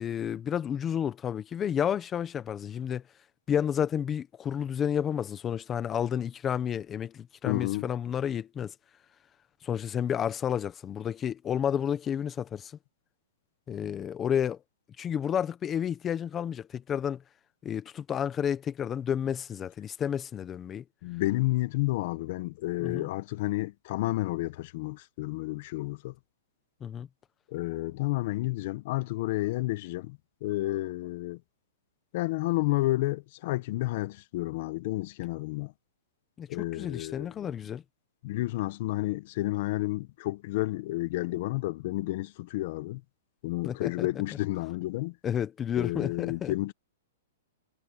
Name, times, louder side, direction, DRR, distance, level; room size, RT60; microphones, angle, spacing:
voice 1, 0.0-3.0 3.5-8.7 9.6-12.7 13.7-14.6 15.0-17.2 17.6-20.8 22.8-23.1 26.8-27.1 36.4-36.5 36.8-37.8 43.6-44.1 45.2-46.5, left 8 dB, 20° left, 1.2 m, -31 dB
voice 2, 7.4-7.9 21.0-26.1 27.5-31.4 32.1-35.7 36.5-37.5 38.2-43.0 43.4-45.2 45.7-46.7, left 18 dB, 45° left, 1.0 m, -31 dB
hypercardioid pair, 155°, 0 cm